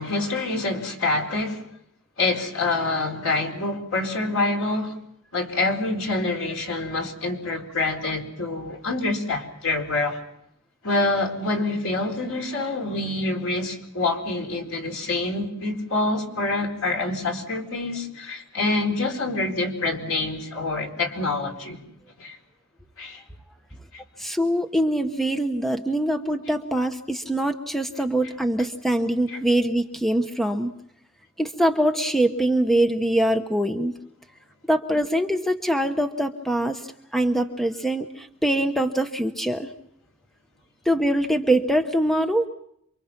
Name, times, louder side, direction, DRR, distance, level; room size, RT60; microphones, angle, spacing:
voice 1, 0.0-1.6 2.2-4.9 5.3-10.2 10.8-21.8 22.2-22.4 23.0-23.2 29.3-29.4, left 2 dB, 80° left, 4.1 m, -26 dB
voice 2, 24.2-30.7 31.4-33.9 34.7-36.8 37.1-39.7 40.9-42.5, right 1 dB, ahead, 1.0 m, -23 dB
28.0 x 24.0 x 6.0 m
head